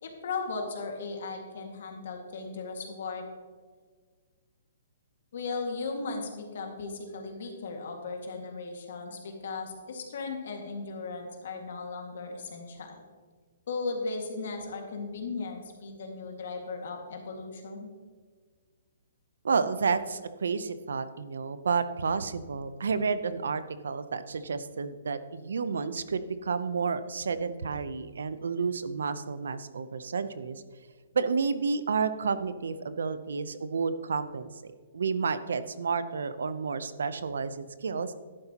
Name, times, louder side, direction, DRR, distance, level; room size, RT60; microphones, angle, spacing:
voice 1, 0.0-3.3 5.3-13.0 13.7-17.9, left 4 dB, 65° left, 2 dB, 1.9 m, -37 dB
voice 2, 19.4-30.6 31.1-38.1, right 5 dB, 85° right, 13 dB, 0.7 m, -31 dB
11.0 x 9.7 x 2.9 m, 1.5 s
hypercardioid pair, 160°, 0 cm